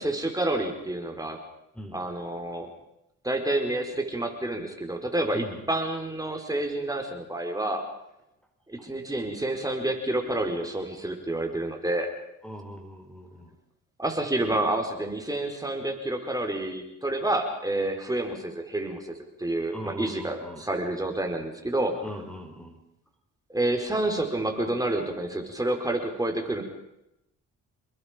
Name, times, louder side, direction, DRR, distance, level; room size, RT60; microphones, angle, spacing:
voice 1, 0.0-1.4 1.9-2.7 3.2-7.8 8.7-12.1 14.0-21.9 23.5-26.6, right 1 dB, 10° right, 3 dB, 5.0 m, -29 dB
voice 2, 5.3-5.6 8.8-8.9 12.4-13.5 19.7-20.7 22.0-22.8, equal, 5° left, 4 dB, 4.7 m, -40 dB
30.0 x 21.0 x 5.3 m, 0.85 s
cardioid pair, 90°, 30 cm